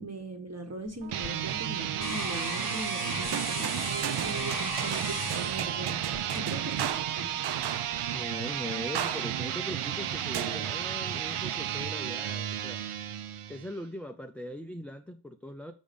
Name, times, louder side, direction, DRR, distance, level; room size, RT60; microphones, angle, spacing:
voice 1, 0.0-7.5, right 2 dB, 30° right, 1.5 m, -40 dB
sound 1, 0.9-7.1 7.6-8.1, left 5 dB, 40° left, 0.9 m, -39 dB
sound 2, 1.0-13.8, right 10 dB, 90° right, 0.7 m, -33 dB
sound 3, 1.5-2.4 3.3-8.1 8.9-9.6 10.3-11.2, right 9 dB, 55° right, 0.5 m, -36 dB
voice 2, 6.8-7.3 8.1-12.8 13.5-15.7, left 1 dB, 5° left, 0.5 m, -40 dB
6.8 x 5.2 x 5.2 m
wide cardioid pair, 105°, 50 cm